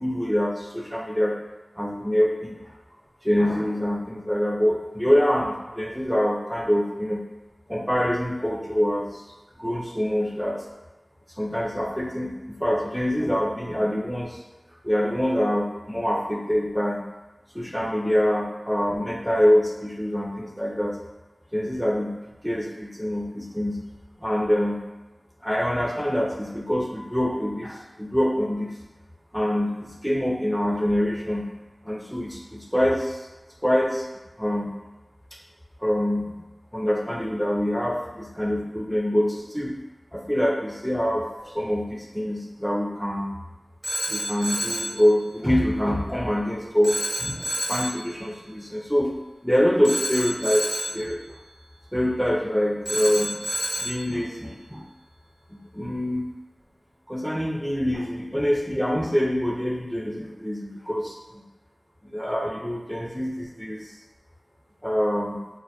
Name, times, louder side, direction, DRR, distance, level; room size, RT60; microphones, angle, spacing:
voice 1, 0.0-1.4 1.8-2.6 3.2-7.2 7.7-9.2 9.6-10.6 11.4-14.4 14.8-17.1 17.5-21.0 21.5-22.2 22.4-23.8 24.2-24.8 25.4-28.7 29.3-31.5 31.8-33.3 33.6-34.1 34.4-34.7 35.8-36.3 36.7-39.7 40.1-43.3 44.1-49.1 49.4-51.2 51.9-53.4 53.8-54.9 55.5-56.2 57.1-61.4 62.0-63.9 64.8-65.4, equal, ahead, -2 dB, 0.4 m, -25 dB
Telephone, 43.8-45.0 46.8-48.0 49.8-51.0 52.9-54.0, equal, 40° right, 0.7 m, -29 dB
2.1 x 2.1 x 2.7 m, 1.1 s
wide cardioid pair, 55°, 0 cm